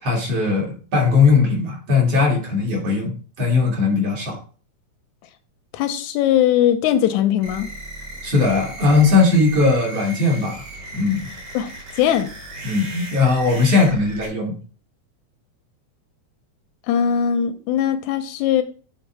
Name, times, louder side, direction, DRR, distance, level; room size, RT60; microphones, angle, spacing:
voice 1, 0.0-4.4 8.2-10.6 10.9-11.3 12.6-14.5, left 4 dB, 55° right, 2.9 m, -19 dB
voice 2, 5.7-7.7 11.5-11.7 12.0-12.3 16.9-18.6, left 10 dB, 90° left, 2.1 m, -20 dB
sound 1, 7.4-14.3, right 1 dB, 80° right, 5.3 m, -36 dB
8.2 x 3.7 x 4.6 m
omnidirectional pair, 3.3 m